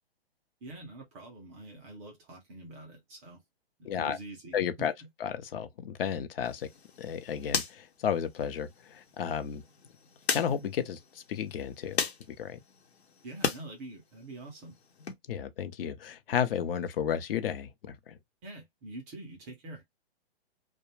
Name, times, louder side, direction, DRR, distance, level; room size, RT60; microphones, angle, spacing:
voice 1, 0.6-3.4 3.8-5.1 13.2-14.8 18.4-19.8, right 2 dB, 15° right, 0.4 m, -45 dB
voice 2, 3.8-4.2 4.5-4.9 5.2-6.7 7.0-9.6 10.3-12.0 12.4-12.6 15.3-18.2, left 8 dB, 65° left, 0.6 m, -33 dB
sound 1, 6.4-13.6 14.0-15.1, left 6 dB, 85° left, 0.9 m, -37 dB
2.4 x 2.1 x 3.0 m
hypercardioid pair, 145°, 31 cm